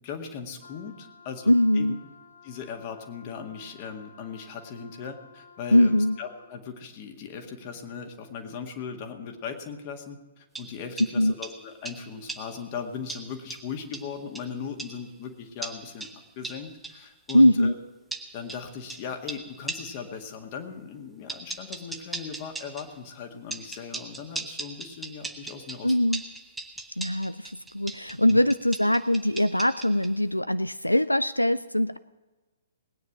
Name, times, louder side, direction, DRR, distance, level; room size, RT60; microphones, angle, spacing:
voice 1, 0.0-1.9 2.4-16.1 16.4-17.7 18.3-25.9 28.3-28.4, left 6 dB, 35° left, 4 dB, 2.0 m, -38 dB
Wind instrument woodwind instrument, 0.6-6.6, left 5 dB, 70° left, 1.8 m, -53 dB
voice 2, 1.5-2.0 5.7-6.2 11.2-11.3 17.3-17.7 25.8-26.2 27.0-32.0, left 1 dB, 90° left, 15 dB, 0.3 m, -22 dB
sound 1, 10.5-12.7 13.1-15.1 15.6-17.5 18.1-20.1 21.3-23.0 23.5-30.2, right 3 dB, 5° right, 0.9 m, -40 dB
19.5 x 9.5 x 6.0 m, 1.2 s
figure-of-eight pair, 115°, 0 cm